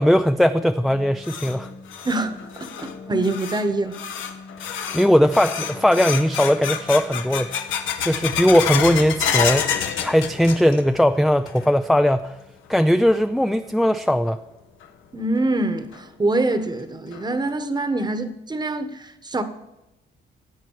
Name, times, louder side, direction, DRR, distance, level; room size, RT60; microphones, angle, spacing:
voice 1, 0.0-1.7 4.6-7.5 8.1-12.4 12.7-14.4, equal, ahead, 0.3 m, -19 dB
sound 1, 0.8-11.0 11.3-11.9 12.3-12.4 13.1-13.2 14.8-14.9 15.4-15.5 15.9-16.0 16.5-16.6 17.1-17.5, left 8 dB, 85° left, 1.0 m, -29 dB
voice 2, 2.0-4.0 15.1-19.4, right 2 dB, 20° right, 1.1 m, -25 dB
15.5 x 8.2 x 4.7 m
cardioid pair, 90°, 20 cm